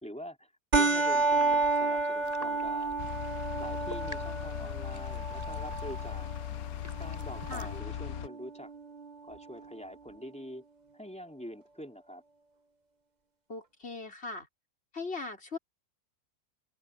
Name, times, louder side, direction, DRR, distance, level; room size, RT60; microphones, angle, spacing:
voice 1, 0.0-3.0 3.6-6.3 7.0-8.7 9.2-10.6 10.9-12.2, equal, 5° left, 3.1 m, -45 dB
sound 1, 0.7-9.7, right 3 dB, 30° right, 1.3 m, -31 dB
sound 2, 1.2-7.8, equal, 10° right, 4.4 m, -50 dB
sound 3, 3.0-8.3, left 12 dB, 85° left, 1.1 m, -39 dB
voice 2, 13.5-14.5 14.9-15.6, left 3 dB, 45° left, 5.2 m, -39 dB
open air
omnidirectional pair, 1.5 m